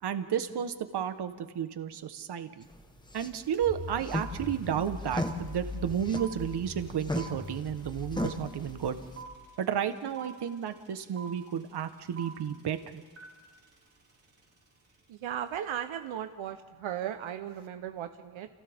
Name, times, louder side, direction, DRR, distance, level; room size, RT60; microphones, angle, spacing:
voice 1, 0.0-2.7 3.1-9.0 9.6-13.0, right 8 dB, 55° right, 9 dB, 1.2 m, -32 dB
sound 1, 2.6-9.2, left 1 dB, 10° left, 1.2 m, -38 dB
sound 2, 3.5-3.6 3.8-15.0, right 6 dB, 30° right, 3.1 m, -48 dB
sound 3, 3.6-9.5, left 2 dB, 10° right, 3.4 m, -43 dB
voice 2, 15.1-18.5, right 10 dB, 80° right, 8 dB, 1.0 m, -36 dB
30.0 x 29.5 x 3.6 m, 1.4 s
wide cardioid pair, 155°, 47 cm